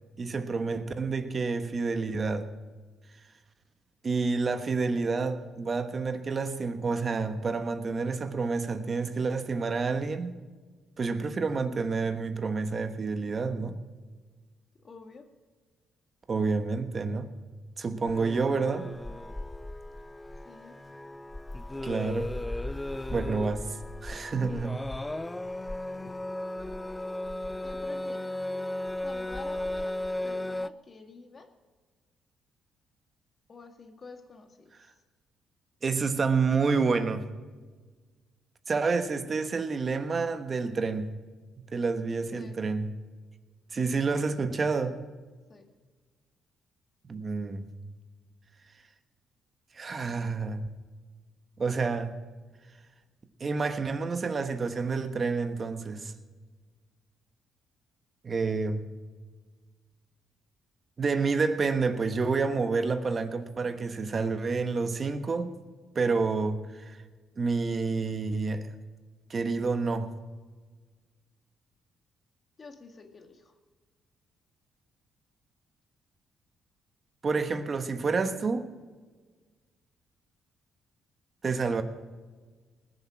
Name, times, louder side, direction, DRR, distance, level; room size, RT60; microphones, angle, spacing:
voice 1, 0.2-2.5 4.0-10.3 11.0-13.8 16.3-17.3 17.8-18.9 21.8-22.3 23.1-23.6 24.0-24.8 35.8-37.3 38.7-41.1 41.7-42.9 43.7-45.0 47.1-47.7 49.7-50.7 51.6-52.1 53.4-56.1 58.2-58.8 61.0-65.5 65.9-67.0 67.4-68.7 69.3-70.1 77.2-78.7 81.4-81.8, right 4 dB, 40° right, 9 dB, 1.3 m, -29 dB
voice 2, 14.8-15.3 20.4-20.8 27.6-28.3 29.0-29.9 30.2-31.5 33.5-34.9 42.3-42.6 43.9-44.1 45.5-45.7 72.6-73.6, left 4 dB, 40° left, 5 dB, 2.0 m, -48 dB
sound 1, 18.1-30.7, left 1 dB, 10° left, 0.3 m, -36 dB
20.0 x 7.1 x 6.3 m, 1.4 s
cardioid pair, 90°, 0 cm